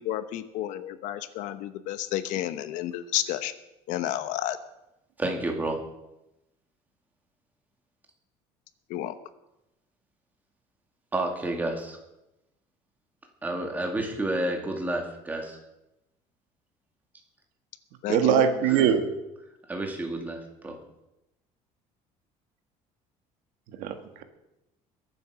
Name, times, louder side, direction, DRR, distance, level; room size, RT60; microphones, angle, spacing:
voice 1, 0.0-3.5 3.9-4.6 8.9-9.1 18.0-18.5, left 13 dB, 70° left, 12 dB, 1.0 m, -31 dB
voice 2, 5.2-5.9 11.1-12.0 13.4-15.6 18.7-18.9 19.7-20.8, right 1 dB, 10° right, 2 dB, 2.2 m, -30 dB
voice 3, 18.1-19.0 23.8-24.2, right 9 dB, 85° right, 7 dB, 1.9 m, -22 dB
22.0 x 8.0 x 6.3 m, 0.92 s
cardioid pair, 170°, 14 cm